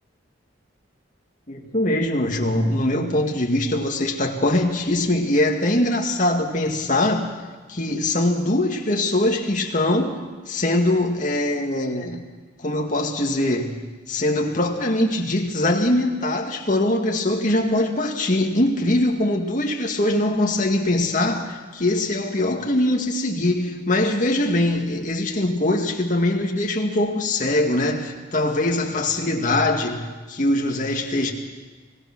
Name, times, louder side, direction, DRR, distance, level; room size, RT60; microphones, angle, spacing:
voice 1, 1.5-7.3 7.7-10.2 10.5-12.2 12.6-13.8 14.1-31.3, left 1 dB, 40° left, 1 dB, 2.2 m, -22 dB
25.5 x 18.0 x 6.2 m, 1.3 s
head